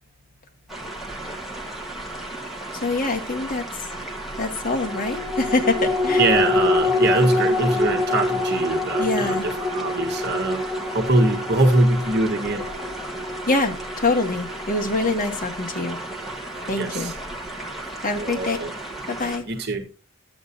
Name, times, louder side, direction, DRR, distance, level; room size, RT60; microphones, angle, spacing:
sound 1, 0.7-19.4, right 2 dB, ahead, 1.8 m, -35 dB
voice 1, 2.8-3.7 4.4-6.3 7.2-7.6 9.0-9.5 13.5-16.0 16.7-17.1 18.0-18.6 19.1-19.5, left 2 dB, 40° left, 1.6 m, -25 dB
sound 2, 4.8-15.6 16.0-16.1, left 2 dB, 20° right, 3.8 m, -25 dB
voice 2, 6.2-10.6 10.9-12.6 16.6-17.1 18.1-18.7 19.5-19.9, right 2 dB, 50° right, 1.4 m, -23 dB
13.0 x 8.8 x 2.6 m
head